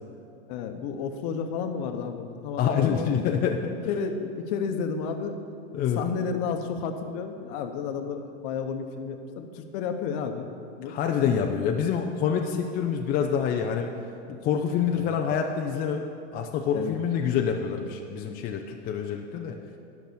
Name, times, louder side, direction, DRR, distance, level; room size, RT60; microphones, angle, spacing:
voice 1, 0.5-3.1 3.9-5.3 6.0-10.5 10.8-10.9 14.9-15.2 16.7-17.0, left 6 dB, 50° left, 6 dB, 1.0 m, -31 dB
voice 2, 2.6-3.6 5.7-6.0 10.9-13.9 14.3-16.0 16.3-19.5, left 7 dB, 25° left, 2 dB, 0.5 m, -26 dB
12.0 x 5.9 x 6.9 m, 2.6 s
supercardioid pair, 135°, 37 cm